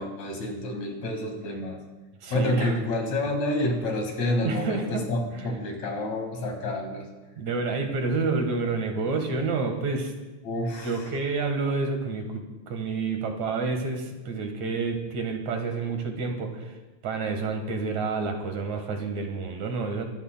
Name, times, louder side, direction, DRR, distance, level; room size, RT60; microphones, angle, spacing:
voice 1, 0.0-1.8 2.3-7.1 10.4-11.1, left 1 dB, 65° left, 2 dB, 3.1 m, -28 dB
voice 2, 2.2-2.7 4.4-5.0 5.4-5.5 7.4-10.1 10.8-16.7 17.0-20.0, right 4 dB, 70° right, 4 dB, 2.7 m, -29 dB
24.5 x 12.5 x 2.2 m, 1.2 s
omnidirectional pair, 3.5 m